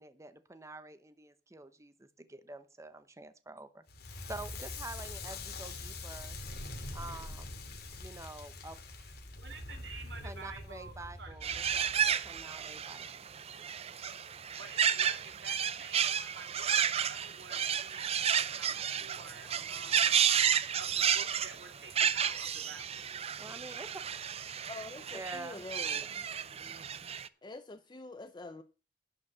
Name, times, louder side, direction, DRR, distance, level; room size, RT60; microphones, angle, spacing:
voice 1, 0.0-3.8 4.3-6.4 6.9-7.6 8.0-8.8 10.2-13.3 23.4-24.0 25.1-25.6 25.9-26.2 26.7-26.8, right 2 dB, 15° right, 0.9 m, -47 dB
Crackle, 3.9-12.8, left 2 dB, 60° left, 2.6 m, -44 dB
voice 2, 9.0-11.3 11.7-12.0 14.6-20.2 20.8-23.1 26.5-26.6, right 4 dB, 70° right, 2.3 m, -50 dB
sound 1, 11.4-27.3, right 8 dB, 35° right, 0.5 m, -32 dB
voice 3, 24.7-26.1 27.4-28.6, left 2 dB, 25° left, 0.6 m, -46 dB
11.0 x 5.0 x 7.3 m
head